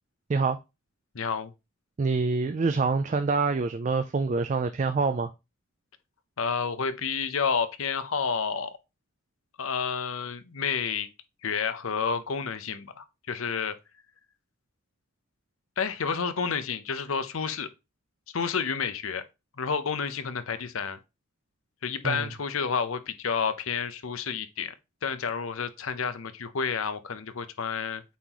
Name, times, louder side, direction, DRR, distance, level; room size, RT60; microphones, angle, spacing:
voice 1, 1.1-1.5 6.4-8.7 9.6-11.1 11.4-13.8 15.8-17.7 18.3-19.2 19.6-21.0 21.8-24.7 25.0-28.0, left 6 dB, 75° left, 0.7 m, -30 dB
voice 2, 2.0-5.3 22.0-22.2, right 4 dB, 35° right, 0.3 m, -26 dB
8.3 x 3.0 x 3.8 m
head